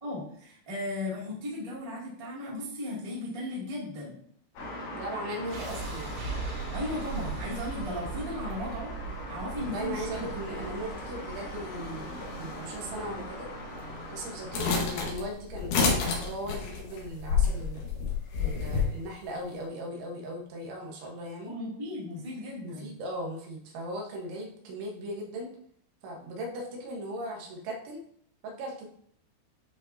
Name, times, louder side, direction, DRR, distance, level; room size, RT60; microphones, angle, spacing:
voice 1, 0.0-4.1 6.7-8.9 9.3-10.2 21.4-22.9, left 1 dB, 25° right, -7 dB, 0.7 m, -36 dB
sound 1, 4.6-14.7, left 1 dB, 55° left, 4.5 m, -40 dB
voice 2, 5.0-6.2 9.6-13.5 14.1-17.8 18.4-21.5 22.6-25.5 26.0-28.0 28.4-28.9, right 1 dB, 75° right, 0 dB, 3.6 m, -38 dB
sound 2, 5.5-17.5, right 5 dB, 55° right, 3.2 m, -41 dB
sound 3, 14.5-18.9, left 5 dB, 70° left, 3.7 m, -28 dB
11.5 x 4.9 x 2.8 m, 0.64 s
omnidirectional pair, 5.7 m